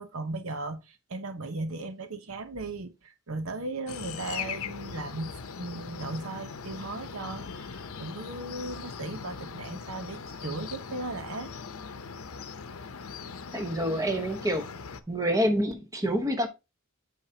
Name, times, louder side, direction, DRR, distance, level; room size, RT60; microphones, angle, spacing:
voice 1, 0.0-11.5, right 2 dB, 75° right, 1.0 m, -37 dB
sound 1, 3.9-15.0, left 6 dB, 90° left, 0.7 m, -40 dB
voice 2, 13.5-14.7 15.1-16.5, equal, 15° right, 1.1 m, -27 dB
8.9 x 5.6 x 2.8 m
head